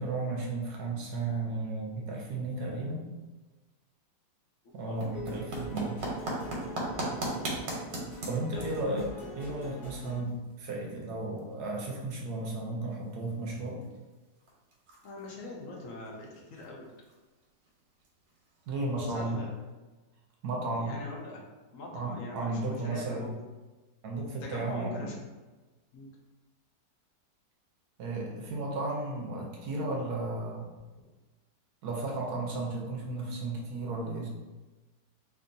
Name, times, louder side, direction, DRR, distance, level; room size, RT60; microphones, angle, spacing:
voice 1, 0.0-3.1 4.7-6.0 8.2-13.8 18.7-19.4 20.4-21.0 21.9-23.3 24.0-25.1 28.0-30.7 31.8-34.3, right 2 dB, 70° right, -1 dB, 1.1 m, -34 dB
sound 1, 4.7-19.0, right 1 dB, 90° right, 1.6 m, -41 dB
sound 2, 5.1-10.2, left 1 dB, 40° left, 1.4 m, -43 dB
voice 2, 8.5-8.9 15.0-16.9 19.0-19.5 20.7-21.4 21.7-23.3 24.4-25.2 25.9-26.1, left 2 dB, 60° left, -1 dB, 0.9 m, -42 dB
4.5 x 2.6 x 2.6 m, 1.2 s
omnidirectional pair, 1.9 m